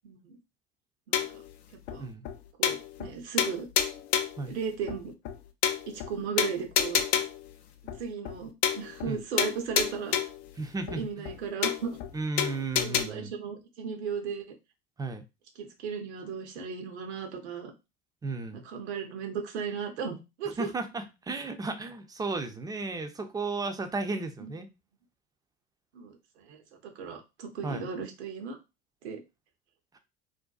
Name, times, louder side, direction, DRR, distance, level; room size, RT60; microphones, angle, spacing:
voice 1, 0.0-0.4 1.1-1.4 1.9-2.1 2.6-3.7 4.5-5.1 5.9-7.2 8.0-10.2 10.9-12.0 12.8-14.5 15.6-17.7 18.6-20.7 24.4-24.5 25.9-28.6 29.0-29.2, right 6 dB, 75° right, 5 dB, 0.7 m, -36 dB
sound 1, 1.1-1.5 1.9-2.0 2.2-2.3 2.6-3.1 3.4-4.4 4.9-5.0 5.2-5.3 5.6-6.1 6.4-7.5 7.9-8.0 8.2-8.4 8.6-9.1 9.4-10.4 10.9-11.0 11.2-11.3 11.6-12.1 12.4-13.0, left 9 dB, 70° left, 0.5 m, -28 dB
voice 2, 10.6-11.0 12.1-13.3 15.0-15.2 18.2-18.6 20.6-24.7 27.6-27.9, right 3 dB, 10° right, 7 dB, 0.3 m, -34 dB
2.5 x 2.2 x 2.3 m, 0.26 s
hypercardioid pair, 65°, 33 cm